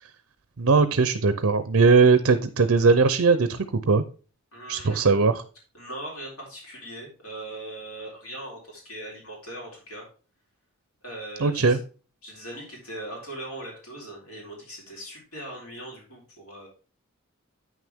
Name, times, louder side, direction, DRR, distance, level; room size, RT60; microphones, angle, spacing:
voice 1, 0.6-4.0 4.7-5.4 11.4-11.8, right 4 dB, 60° right, 12 dB, 0.6 m, -20 dB
voice 2, 4.5-5.1 5.7-10.1 11.0-11.8 12.2-16.7, right 1 dB, 85° left, -2 dB, 4.0 m, -40 dB
8.9 x 6.4 x 3.6 m, 0.36 s
head